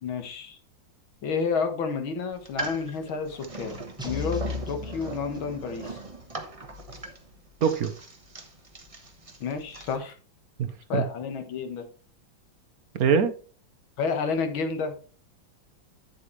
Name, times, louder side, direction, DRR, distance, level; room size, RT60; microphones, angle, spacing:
voice 1, 0.0-0.6 1.2-6.0 9.4-10.2 10.9-11.9 14.0-14.9, left 5 dB, 80° left, 6 dB, 2.2 m, -30 dB
sound 1, 2.3-10.0, right 3 dB, 20° right, 1.1 m, -40 dB
sound 2, 4.0-5.9, left 5 dB, 5° right, 1.2 m, -35 dB
voice 2, 7.6-7.9 10.6-11.0 12.9-13.3, right 6 dB, 55° right, 10 dB, 1.1 m, -23 dB
10.0 x 7.4 x 3.1 m, 0.37 s
omnidirectional pair, 2.2 m